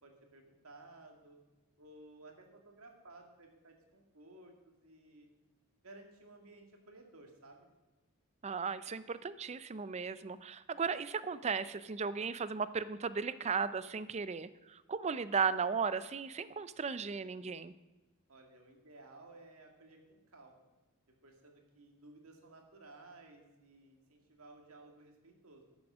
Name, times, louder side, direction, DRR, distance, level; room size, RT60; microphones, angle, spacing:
voice 1, 0.0-1.4 1.8-5.3 5.8-7.7 18.3-20.7 21.2-25.6, right 2 dB, 80° right, 3 dB, 2.0 m, -57 dB
voice 2, 8.4-17.7, right 5 dB, 30° right, 15 dB, 0.4 m, -36 dB
12.5 x 7.0 x 6.2 m, 1.1 s
head